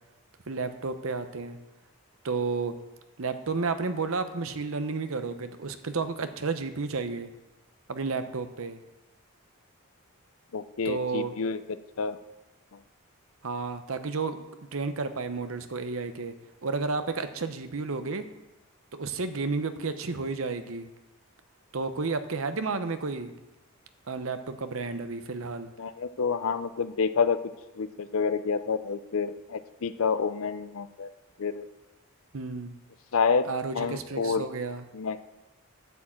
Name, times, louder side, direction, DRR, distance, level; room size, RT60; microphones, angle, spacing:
voice 1, 0.5-1.6 2.2-2.8 3.2-7.3 7.9-8.8 10.8-11.3 13.4-14.4 14.7-16.3 16.6-18.3 18.9-20.9 21.7-23.3 24.1-25.7 32.3-32.8 33.5-34.8, right 4 dB, 70° right, 10 dB, 0.8 m, -31 dB
voice 2, 10.5-11.6 12.0-12.2 25.8-27.4 27.8-31.1 31.4-31.6 33.1-33.5 33.7-34.4 34.9-35.2, left 5 dB, 70° left, 12 dB, 0.5 m, -28 dB
8.3 x 7.2 x 7.5 m, 1.1 s
head